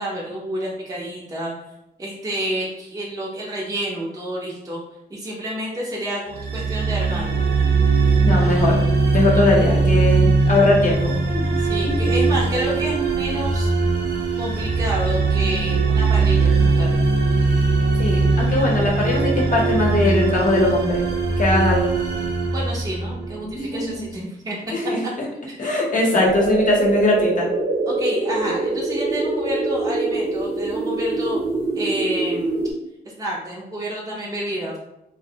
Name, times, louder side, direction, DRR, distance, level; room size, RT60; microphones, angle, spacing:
voice 1, 0.0-1.5 2.0-4.8 5.1-7.3 11.6-13.7 14.4-16.9 22.5-24.6 26.1-26.2 27.9-31.4 31.7-32.6 33.2-34.8, equal, 20° right, -5 dB, 0.5 m, -29 dB
sound 1, 6.3-23.5, right 3 dB, 90° right, 0.5 m, -20 dB
voice 2, 8.2-8.8 9.1-11.4 11.8-12.0 18.0-21.0 21.4-21.9 23.4-24.0 24.7-25.0 25.6-27.5, left 2 dB, 50° left, -2 dB, 0.8 m, -20 dB
sound 2, 26.3-32.7, right 3 dB, 60° right, 0.8 m, -24 dB
2.5 x 2.0 x 2.7 m, 0.86 s
wide cardioid pair, 105°, 17 cm